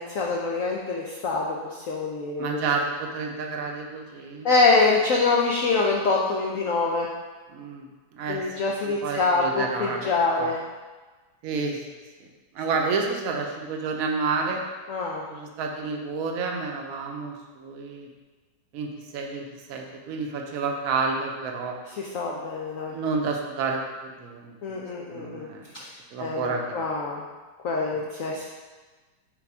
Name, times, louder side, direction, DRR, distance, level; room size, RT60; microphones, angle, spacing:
voice 1, 0.0-2.7 4.4-7.1 8.3-10.6 14.9-15.2 22.0-22.9 24.6-25.5 25.8-25.9 26.2-27.2 27.6-28.4, left 3 dB, 80° left, -2 dB, 0.7 m, -25 dB
voice 2, 2.4-4.5 7.5-7.9 8.1-10.1 10.4-10.5 11.4-11.8 12.2-12.3 12.5-14.6 15.3-18.1 18.7-19.4 19.7-21.8 22.9-24.8 25.1-25.6 26.1-26.9 27.9-28.0, right 4 dB, 60° right, 2 dB, 0.9 m, -30 dB
5.7 x 3.9 x 4.8 m, 1.3 s
omnidirectional pair, 2.2 m